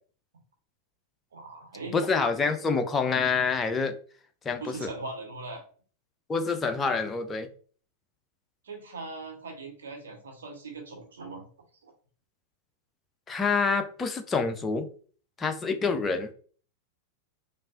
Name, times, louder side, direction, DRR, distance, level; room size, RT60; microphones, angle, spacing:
voice 1, 1.3-2.0 4.6-5.6 8.6-11.4 11.8-11.9, right 3 dB, 65° right, 2 dB, 1.3 m, -40 dB
voice 2, 1.9-4.0 4.4-4.9 6.3-7.5 13.3-14.9 15.4-16.3, left 4 dB, 20° left, 7 dB, 0.6 m, -27 dB
5.3 x 2.5 x 2.6 m, 0.42 s
figure-of-eight pair, 90°, 0 cm